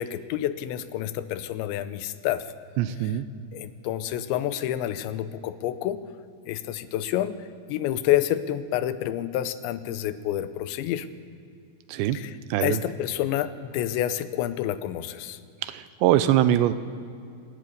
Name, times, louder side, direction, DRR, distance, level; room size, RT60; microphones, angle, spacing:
voice 1, 0.0-2.5 3.5-6.0 6.5-7.4 7.7-11.1 12.1-12.3 12.6-15.4, left 12 dB, 90° left, 12 dB, 3.2 m, -28 dB
voice 2, 2.8-3.3 11.9-12.2 12.5-12.8 15.6-16.7, right 12 dB, 85° right, 13 dB, 3.0 m, -22 dB
23.5 x 13.5 x 9.4 m, 2.4 s
omnidirectional pair, 5.0 m